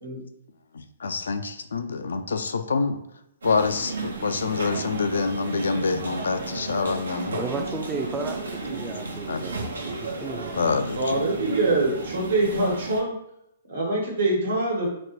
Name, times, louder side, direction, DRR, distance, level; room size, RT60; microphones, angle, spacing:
voice 1, 1.0-3.0 3.4-7.4 9.3-9.4 10.5-11.3, left 4 dB, 80° left, 9 dB, 0.3 m, -26 dB
sound 1, 3.4-13.0, right 3 dB, 90° right, 0.7 m, -33 dB
voice 2, 7.3-10.7, right 3 dB, 15° right, 3 dB, 0.3 m, -34 dB
voice 3, 10.9-13.1 13.7-14.9, right 2 dB, 70° right, -1 dB, 1.2 m, -24 dB
3.9 x 2.1 x 2.9 m, 0.78 s
hypercardioid pair, 130°, 0 cm